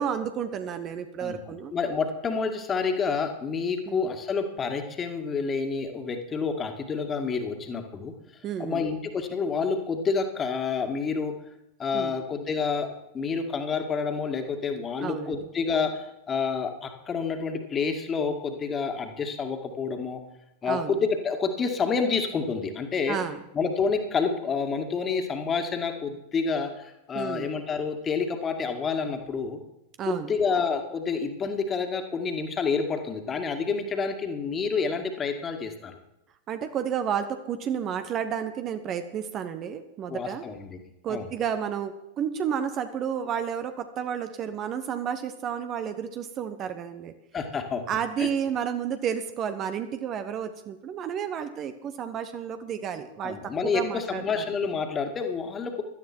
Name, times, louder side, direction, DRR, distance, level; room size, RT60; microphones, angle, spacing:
voice 1, 0.0-1.7 3.9-4.1 8.4-8.9 11.9-12.1 15.0-15.4 20.6-20.9 23.1-23.4 27.1-27.5 30.0-30.3 36.5-40.4 41.0-47.1 47.9-54.4, right 8 dB, 30° right, 10 dB, 0.9 m, -31 dB
voice 2, 1.7-8.1 8.6-11.3 11.8-12.9 13.1-20.2 20.6-23.2 23.5-29.6 30.1-36.0 40.1-40.8 41.1-41.3 47.3-47.8 48.2-48.3 53.2-55.8, left 5 dB, 20° left, 5 dB, 2.1 m, -28 dB
16.5 x 12.5 x 4.5 m, 0.89 s
figure-of-eight pair, 90°, 0 cm